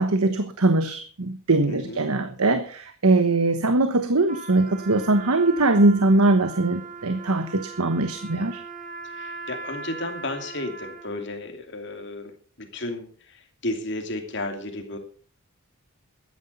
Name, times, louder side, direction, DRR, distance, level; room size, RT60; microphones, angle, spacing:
voice 1, 0.0-8.6, right 2 dB, 85° right, 9 dB, 1.2 m, -21 dB
voice 2, 1.7-2.0 9.1-15.0, left 2 dB, 50° left, 5 dB, 2.6 m, -33 dB
Trumpet, 4.2-11.2, right 4 dB, 35° right, 1.9 m, -39 dB
14.0 x 10.0 x 5.5 m, 0.41 s
head